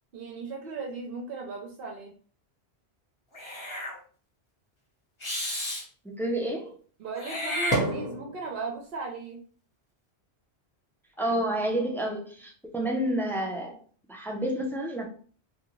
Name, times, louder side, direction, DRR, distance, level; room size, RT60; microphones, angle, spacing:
voice 1, 0.1-2.1 7.0-9.4 11.2-11.3, right 4 dB, 65° right, 1 dB, 0.8 m, -36 dB
Meow / Hiss, 3.3-4.0 5.2-5.8 7.2-8.4, equal, 30° left, 0.9 m, -30 dB
voice 2, 6.0-6.7 11.2-13.8 14.1-15.0, right 1 dB, 5° left, 0 dB, 0.3 m, -29 dB
3.7 x 2.2 x 3.0 m, 0.42 s
omnidirectional pair, 1.1 m